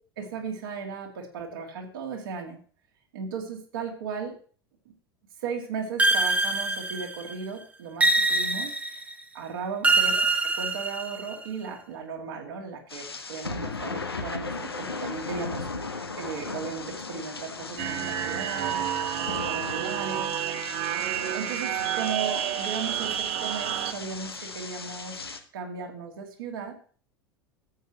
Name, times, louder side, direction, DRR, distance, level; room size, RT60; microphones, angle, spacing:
voice 1, 0.2-2.6 3.1-4.4 4.8-4.9 5.4-9.0 9.3-18.8 19.2-20.6 21.1-26.7, right 5 dB, 65° right, 0 dB, 2.7 m, -36 dB
sound 1, 6.0-7.3 8.0-9.1 9.8-11.4, right 2 dB, 10° right, 1.0 m, -24 dB
sound 2, 12.9-25.4, left 3 dB, 85° left, 1.0 m, -37 dB
sound 3, 17.8-23.9, right 12 dB, 50° right, 0.9 m, -30 dB
14.0 x 8.4 x 3.1 m, 0.43 s
figure-of-eight pair, 75°, 12 cm